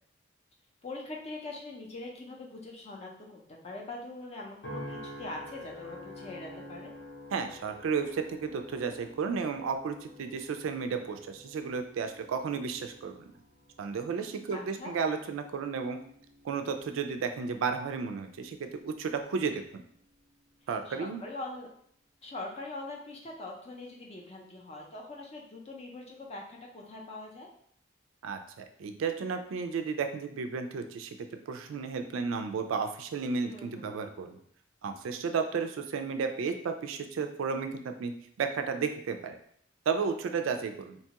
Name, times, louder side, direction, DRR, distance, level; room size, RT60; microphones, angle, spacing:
voice 1, 0.8-6.9 14.5-14.9 20.9-21.7 22.2-27.5 33.5-34.0, left 2 dB, 30° left, -1 dB, 0.5 m, -42 dB
sound 1, 4.6-19.1 19.6-20.1, left 1 dB, 65° left, 0.8 m, -49 dB
voice 2, 7.3-13.3 13.8-16.0 16.4-19.8 20.7-21.2 28.2-31.2 31.5-34.4 34.8-38.1 38.4-39.4 39.9-41.0, right 5 dB, 90° right, 7 dB, 0.3 m, -33 dB
2.9 x 2.3 x 2.8 m, 0.65 s
head